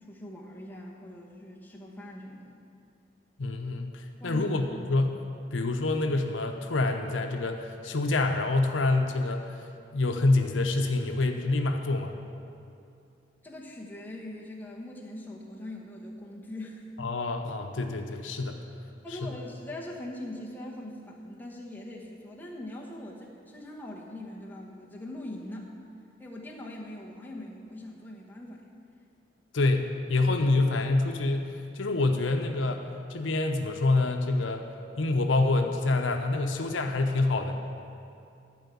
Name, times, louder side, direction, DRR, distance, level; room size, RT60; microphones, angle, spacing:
voice 1, 0.0-2.5 4.2-4.7 13.4-16.9 19.0-25.7 26.2-28.7, left 1 dB, 10° left, -3 dB, 1.1 m, -42 dB
voice 2, 3.4-5.2 5.5-9.6 9.9-12.2 17.0-18.6 19.2-19.4 29.5-34.7 35.0-37.6, left 2 dB, 85° left, 5 dB, 0.7 m, -27 dB
11.5 x 4.6 x 8.4 m, 2.5 s
head